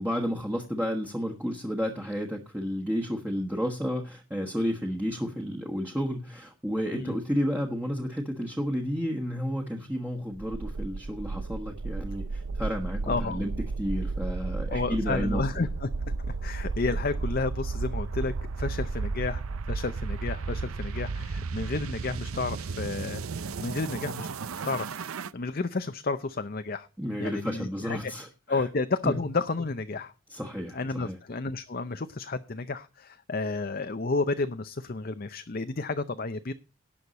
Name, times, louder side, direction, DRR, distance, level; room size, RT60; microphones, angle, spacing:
voice 1, 0.0-13.5 13.8-15.4 27.0-28.6 29.0-29.2 30.3-31.2, equal, 10° right, 1 dB, 1.3 m, -31 dB
sound 1, 10.4-25.3, right 4 dB, 75° right, 0.6 m, -33 dB
voice 2, 13.1-13.4 14.7-15.9 16.2-19.4 19.7-24.3 24.6-25.0 25.3-26.9 27.2-28.1 28.5-30.1 30.7-36.5, left 3 dB, 40° left, 10 dB, 0.6 m, -31 dB
18.0 x 6.5 x 4.1 m, 0.35 s
head